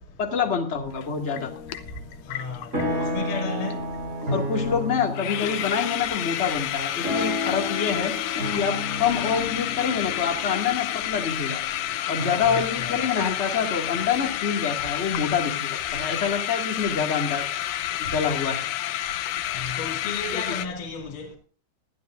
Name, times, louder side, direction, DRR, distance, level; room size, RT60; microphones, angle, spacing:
voice 1, 0.2-1.5 4.3-8.1 8.5-11.6 12.1-17.4 18.0-18.7 20.3-20.4, left 6 dB, 25° left, 1.4 m, -26 dB
sound 1, 1.0-1.1 1.4-3.1 3.4-3.5 3.7-4.0 4.2-4.3 4.7-4.8 5.0-20.7, left 12 dB, 75° left, 2.1 m, -30 dB
sound 2, 1.3-1.9 2.3-12.3, left 2 dB, 20° right, 4.5 m, -32 dB
voice 2, 2.3-3.8 12.1-13.3 19.6-21.3, left 4 dB, 60° left, 3.6 m, -34 dB
19.5 x 12.0 x 2.5 m
omnidirectional pair, 4.4 m